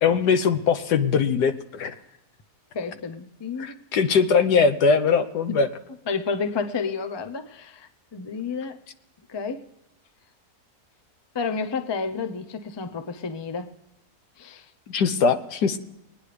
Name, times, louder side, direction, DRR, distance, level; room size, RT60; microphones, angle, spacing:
voice 1, 0.0-1.9 3.6-5.7 14.9-15.8, left 5 dB, 85° left, 9 dB, 1.5 m, -21 dB
voice 2, 2.7-3.8 6.1-8.8 9.3-9.7 11.3-13.7 14.4-14.7, left 5 dB, 30° left, 8 dB, 0.4 m, -30 dB
22.5 x 9.7 x 3.3 m, 0.93 s
omnidirectional pair, 1.7 m